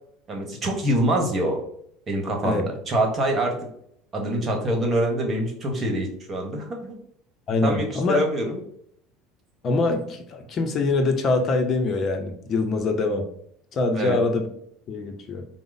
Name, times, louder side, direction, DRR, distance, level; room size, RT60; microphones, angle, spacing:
voice 1, 0.3-1.6 2.1-3.7 4.1-6.9 7.6-8.6 13.9-14.2, right 1 dB, 30° right, 2 dB, 1.2 m, -25 dB
voice 2, 7.5-8.2 9.6-13.3 13.7-14.5 14.9-15.5, left 3 dB, 40° left, 5 dB, 0.6 m, -24 dB
4.7 x 2.0 x 3.9 m, 0.68 s
supercardioid pair, 115°, 0 cm